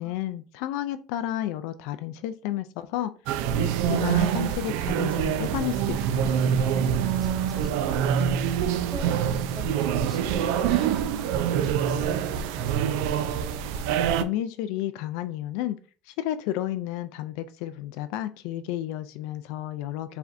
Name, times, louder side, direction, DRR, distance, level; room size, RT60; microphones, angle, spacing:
voice 1, 0.0-3.1 3.6-6.4 14.2-15.8 16.1-20.2, left 12 dB, 75° left, 11 dB, 0.3 m, -32 dB
sound 1, 3.3-14.2, right 8 dB, 75° right, 0.4 m, -25 dB
voice 2, 7.2-9.2 9.5-12.7, right 1 dB, ahead, -2 dB, 2.1 m, -43 dB
4.7 x 3.3 x 2.5 m, 0.39 s
supercardioid pair, 125°, 0 cm